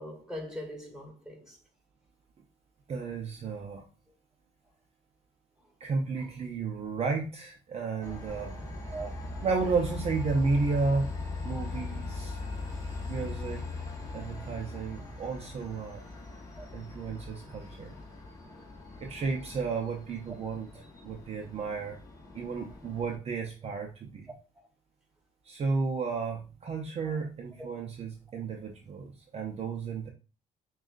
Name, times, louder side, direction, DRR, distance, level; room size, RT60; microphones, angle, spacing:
voice 1, 0.0-1.6 6.2-6.3 7.9-8.2 8.9-9.4 11.7-11.9 16.6-16.7 20.7-20.8 24.5-24.7 27.0-27.2 27.6-27.7, equal, 5° right, 1.3 m, -42 dB
voice 2, 2.9-3.8 5.8-8.6 9.4-11.1 11.4-12.4 13.1-13.7 14.1-16.0 16.7-18.0 19.0-20.7 21.0-22.0 22.3-24.2 25.4-30.1, right 4 dB, 40° right, 0.6 m, -32 dB
Train, 8.0-23.2, left 3 dB, 20° left, 1.2 m, -40 dB
6.2 x 2.4 x 2.4 m
cardioid pair, 110°, 17 cm